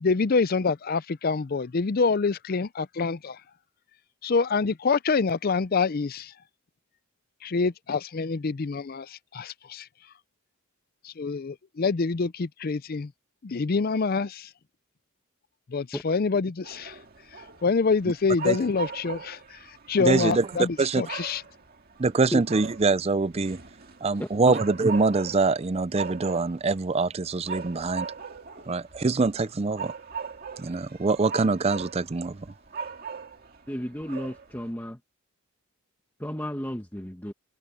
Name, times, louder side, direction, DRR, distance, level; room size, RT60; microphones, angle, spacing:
voice 1, 0.0-3.4 4.2-6.3 7.4-9.9 11.0-13.1 13.4-14.5 15.7-16.9 17.6-19.4 19.9-21.4, left 4 dB, 45° left, 0.5 m, -26 dB
sound 1, 16.6-34.7, right 5 dB, 45° right, 2.1 m, -40 dB
voice 2, 20.0-21.0 22.0-23.6 24.0-28.1 28.7-29.9 30.6-32.5, right 3 dB, 30° right, 0.5 m, -24 dB
voice 3, 24.2-24.5 33.7-35.0 36.2-37.3, equal, 10° left, 1.3 m, -33 dB
head